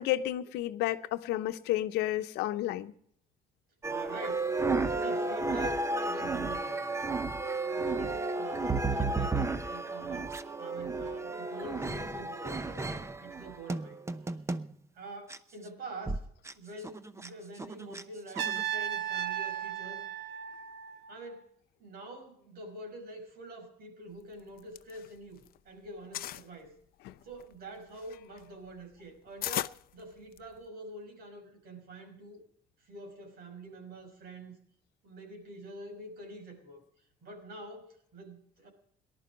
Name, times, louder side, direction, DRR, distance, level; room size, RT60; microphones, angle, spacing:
voice 1, 0.0-2.9 27.0-27.1, left 14 dB, 90° left, 0.9 m, -31 dB
sound 1, 3.8-14.7 15.3-15.4 16.1-16.2 16.4-16.5 16.8-17.3 17.6-18.0 18.4-18.6, right 3 dB, 15° right, 0.8 m, -33 dB
voice 2, 3.8-4.7 5.0-6.9 7.7-14.0 14.9-16.2 16.6-20.0 21.1-21.5 21.8-26.7 27.2-32.4 32.8-34.6 35.0-36.8 37.2-38.7, right 2 dB, 65° right, 5.7 m, -46 dB
Trumpet, 18.4-21.3, right 10 dB, 85° right, 1.4 m, -35 dB
sound 2, 24.4-25.6 25.8-26.5 27.1-30.7, left 14 dB, 60° left, 0.5 m, -38 dB
18.5 x 12.0 x 5.1 m
cardioid pair, 110°, 17 cm